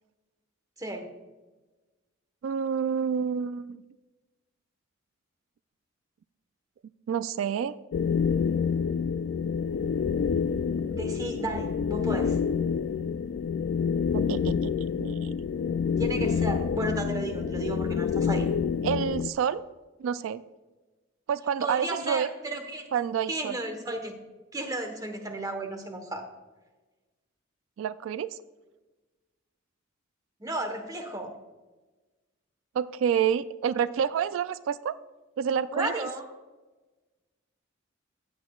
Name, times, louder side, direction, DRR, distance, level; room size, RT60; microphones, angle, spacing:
voice 1, 0.8-1.1 10.9-12.4 16.0-18.5 21.6-22.8 23.3-24.1 24.5-26.2 30.4-31.3 35.7-36.2, right 1 dB, 20° right, 5 dB, 1.1 m, -33 dB
voice 2, 2.4-3.8 7.1-7.7 14.1-14.7 15.0-15.3 18.8-19.6 20.0-20.4 21.3-22.3 22.9-23.6 27.8-28.4 32.7-34.9 35.4-36.1, right 7 dB, 85° right, 16 dB, 0.3 m, -28 dB
sound 1, 7.9-19.3, left 6 dB, 65° left, 0.3 m, -27 dB
15.0 x 8.6 x 2.3 m, 1.2 s
head